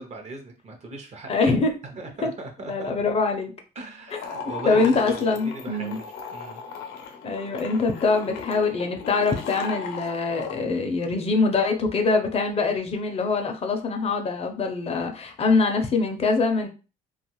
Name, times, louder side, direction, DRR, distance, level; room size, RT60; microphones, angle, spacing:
voice 1, 0.0-1.5 1.9-2.9 3.8-6.6, right 2 dB, 40° right, 4 dB, 0.7 m, -38 dB
voice 2, 1.3-1.7 2.2-2.3 2.7-3.5 4.6-6.0 7.2-16.7, left 4 dB, 35° left, 5 dB, 0.5 m, -23 dB
sound 1, 4.1-10.6, left 6 dB, 85° left, 0.6 m, -37 dB
2.4 x 2.3 x 3.0 m, 0.32 s
cardioid pair, 110°, 17 cm